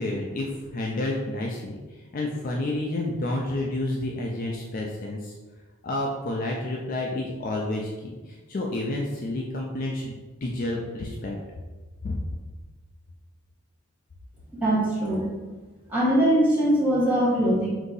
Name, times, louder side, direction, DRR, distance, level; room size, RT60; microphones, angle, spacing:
voice 1, 0.0-1.8 2.1-5.3 5.8-11.4 12.0-12.1, left 1 dB, 40° left, -1 dB, 0.3 m, -30 dB
voice 2, 14.6-15.3 15.9-17.7, right 1 dB, 10° right, -8 dB, 1.1 m, -21 dB
3.8 x 2.6 x 3.9 m, 1.3 s
head